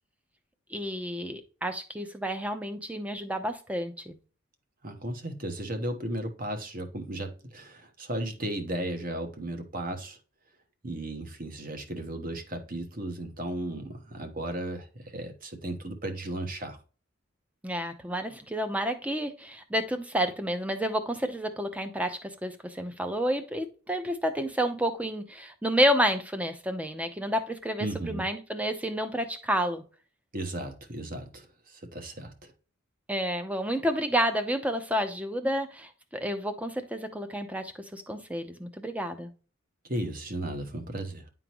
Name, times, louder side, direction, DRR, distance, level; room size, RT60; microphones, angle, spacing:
voice 1, 0.7-4.2 17.6-29.8 33.1-39.3, equal, 5° right, 0.7 m, -30 dB
voice 2, 4.8-10.2 10.8-16.8 27.8-28.3 30.3-32.5 39.9-41.3, right 1 dB, 40° right, 1.2 m, -35 dB
10.5 x 3.8 x 3.0 m
head